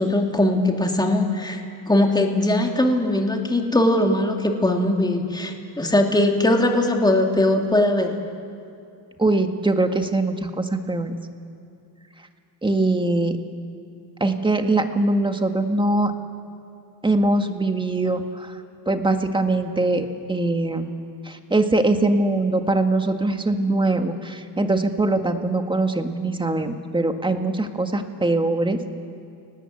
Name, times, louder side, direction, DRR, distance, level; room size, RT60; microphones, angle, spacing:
voice 1, 0.0-1.6 1.9-8.1, left 1 dB, 10° left, 2 dB, 2.7 m, -20 dB
voice 2, 9.2-11.2 12.6-13.4 14.2-16.1 17.0-18.6 18.9-20.9 21.2-28.8, right 2 dB, 10° right, 6 dB, 1.8 m, -22 dB
30.0 x 19.0 x 8.2 m, 2.6 s
cardioid pair, 105°, 42 cm